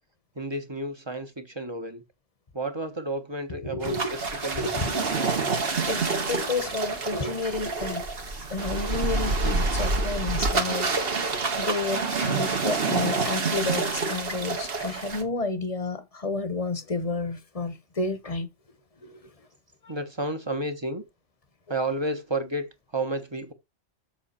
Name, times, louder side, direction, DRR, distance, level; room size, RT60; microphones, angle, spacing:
voice 1, 0.4-2.0 2.5-4.7 8.6-8.7 19.9-21.0 21.7-23.5, right 2 dB, 25° right, 1.0 m, -31 dB
voice 2, 3.6-4.1 4.5-8.0 8.5-18.5 19.0-19.2 19.8-19.9, left 3 dB, 30° left, 1.1 m, -31 dB
sound 1, 3.8-15.2, right 3 dB, 55° right, 1.5 m, -27 dB
7.4 x 6.2 x 4.3 m
omnidirectional pair, 1.2 m